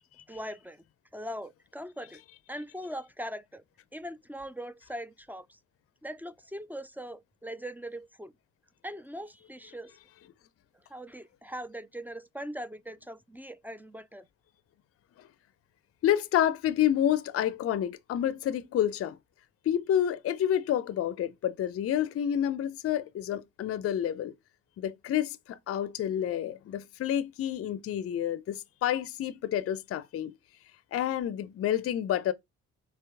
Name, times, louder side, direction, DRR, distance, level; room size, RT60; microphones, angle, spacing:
voice 1, 0.3-0.8 1.1-2.2 2.5-3.6 3.9-5.6 6.0-8.3 8.8-9.9 10.9-14.3, equal, 5° right, 0.4 m, -41 dB
voice 2, 16.0-19.2 19.7-24.3 24.8-30.3 30.9-32.3, left 10 dB, 45° left, 0.5 m, -29 dB
4.5 x 2.8 x 3.4 m
hypercardioid pair, 50°, 32 cm